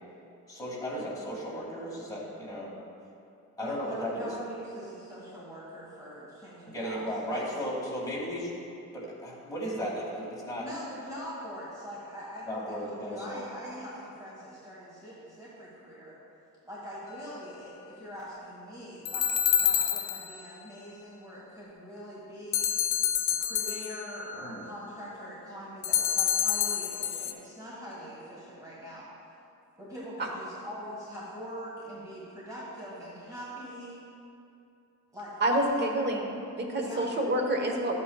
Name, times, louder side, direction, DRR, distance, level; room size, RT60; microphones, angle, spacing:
voice 1, 0.5-2.7 3.6-4.3 6.7-8.5 8.9-10.7 12.5-13.4 24.4-24.6, equal, 10° left, -6 dB, 2.1 m, -35 dB
voice 2, 3.6-7.0 7.3-7.6 10.6-16.1 16.6-22.7 23.3-29.0 29.8-34.0 35.1-35.3 35.7-35.8 36.8-37.0, equal, 10° right, -8 dB, 1.6 m, -43 dB
sound 1, 19.1-20.4 22.5-24.2 25.8-27.3, left 9 dB, 85° left, 0.6 m, -27 dB
voice 3, 35.4-38.0, right 1 dB, 35° right, 1 dB, 1.1 m, -28 dB
12.5 x 8.5 x 2.3 m, 2.7 s
cardioid pair, 145°, 31 cm